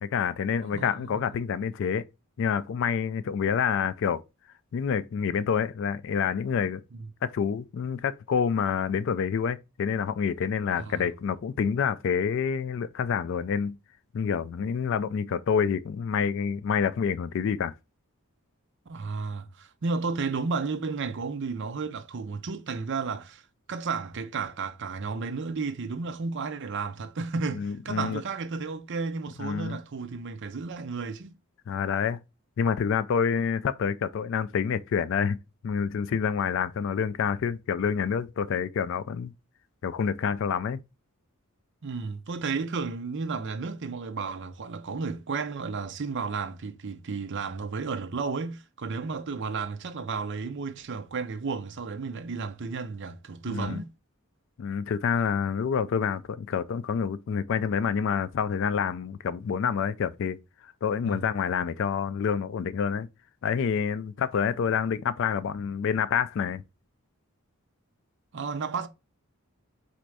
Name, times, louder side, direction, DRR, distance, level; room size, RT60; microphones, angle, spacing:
voice 1, 0.0-2.1 2.4-4.2 4.7-6.8 7.2-13.8 14.1-17.7 27.5-28.2 29.4-29.8 31.7-32.2 32.6-35.4 35.6-39.3 39.8-40.8 53.5-53.8 54.6-60.4 60.8-63.1 63.4-66.6, left 7 dB, 55° left, 0.3 m, -27 dB
voice 2, 0.6-1.3 6.9-7.1 10.8-11.1 18.9-23.4 23.7-31.3 41.8-53.9 61.0-61.2 68.3-68.9, right 4 dB, 55° right, 0.5 m, -33 dB
4.2 x 2.5 x 4.6 m
head